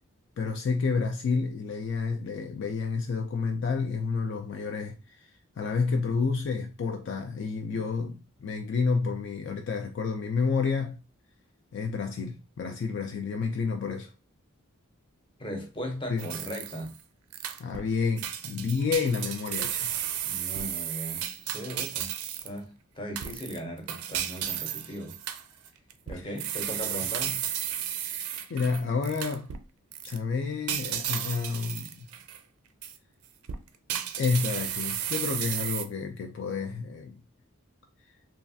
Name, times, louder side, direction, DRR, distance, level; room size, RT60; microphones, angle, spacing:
voice 1, 0.4-5.3 5.6-11.0 11.7-14.1 16.1-16.3 17.6-19.9 26.1-26.3 28.1-29.5 30.0-32.0 34.2-37.2, left 5 dB, 55° left, 0.3 m, -30 dB
voice 2, 15.4-16.9 20.3-22.1 22.4-25.2 26.1-27.4, equal, 20° left, 0.6 m, -38 dB
sound 1, 16.2-17.0 17.3-17.9 18.2-22.6 23.2-29.6 29.9-30.2 30.7-32.4 32.8-33.0 33.4-35.8, right 10 dB, 85° right, 0.4 m, -33 dB
3.2 x 2.3 x 2.6 m
head